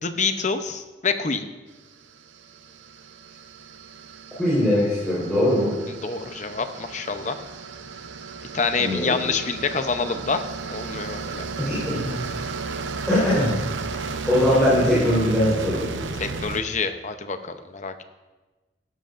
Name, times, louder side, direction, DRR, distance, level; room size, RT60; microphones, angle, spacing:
voice 1, 0.0-1.5 5.9-7.4 8.5-10.4 10.7-11.5 16.2-17.9, left 4 dB, 40° left, 8 dB, 0.7 m, -27 dB
sound 1, 1.9-16.6, right 4 dB, 85° right, 0.8 m, -34 dB
voice 2, 4.4-5.7 8.8-9.1 11.6-12.2 13.1-13.6 14.3-15.9, left 1 dB, 5° left, -11 dB, 4.1 m, -21 dB
15.5 x 12.5 x 2.6 m, 1.2 s
head